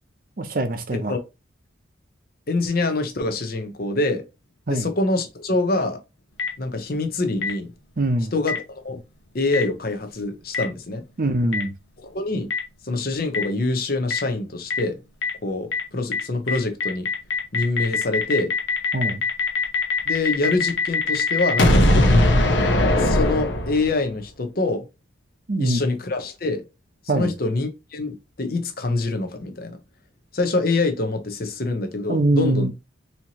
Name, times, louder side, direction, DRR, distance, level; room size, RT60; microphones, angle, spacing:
voice 1, 0.4-1.1 4.7-4.9 8.0-8.3 11.2-11.7 18.9-19.2 25.5-25.8 27.1-27.3 32.1-32.7, right 2 dB, 45° right, 0.6 m, -23 dB
voice 2, 2.5-4.2 4.7-6.0 6.6-7.7 8.3-9.0 9.3-11.0 12.0-12.5 12.8-15.0 15.4-17.1 17.5-18.5 20.1-22.2 23.0-24.8 25.6-26.6 27.1-29.8 30.3-32.7, left 2 dB, 50° left, 0.7 m, -25 dB
Boom, 6.4-6.5 7.4-7.5 8.5-8.6 9.5-9.6 10.5-10.6 11.5-11.6 12.5-12.6 13.3-13.4 14.1-14.2 14.7-14.8 15.2-15.3 15.7-15.8 16.1-16.2 16.5-24.0, left 2 dB, 75° left, 0.9 m, -20 dB
4.3 x 2.8 x 2.9 m
head